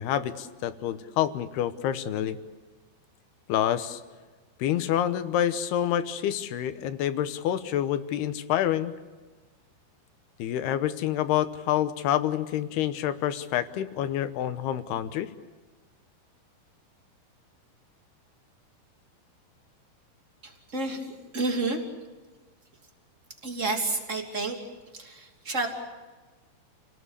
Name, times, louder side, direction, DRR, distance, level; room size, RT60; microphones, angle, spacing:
voice 1, 0.0-2.4 3.5-4.0 4.6-8.9 10.4-15.3, left 11 dB, 75° left, 11 dB, 2.9 m, -27 dB
voice 2, 20.4-21.8 23.4-24.6 24.9-25.7, right 3 dB, 20° right, 2 dB, 2.6 m, -30 dB
29.0 x 19.0 x 8.2 m, 1.3 s
omnidirectional pair, 4.9 m